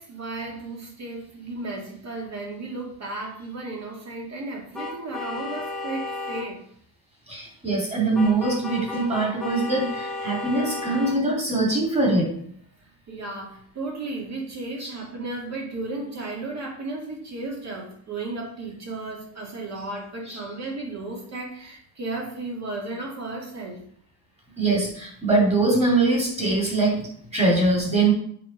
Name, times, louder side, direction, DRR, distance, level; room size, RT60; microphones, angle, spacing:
voice 1, 0.0-6.6 13.1-23.8, right 2 dB, 40° right, 0 dB, 2.2 m, -34 dB
sound 1, 4.7-6.5 8.1-11.2, left 2 dB, ahead, 1.5 m, -33 dB
voice 2, 7.3-12.3 14.8-14.9 20.3-20.4 24.6-28.1, right 2 dB, 15° right, -2 dB, 2.7 m, -22 dB
7.5 x 5.2 x 5.2 m, 0.62 s
cardioid pair, 170°, 40 cm